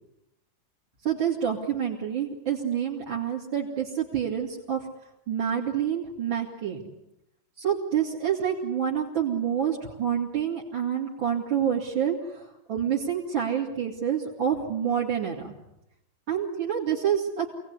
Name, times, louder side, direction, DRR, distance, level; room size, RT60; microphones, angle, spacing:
voice 1, 1.1-4.9 5.3-6.8 7.6-15.5 16.3-17.5, right 8 dB, 65° right, -4 dB, 3.6 m, -27 dB
27.5 x 19.0 x 9.8 m, 0.85 s
omnidirectional pair, 2.3 m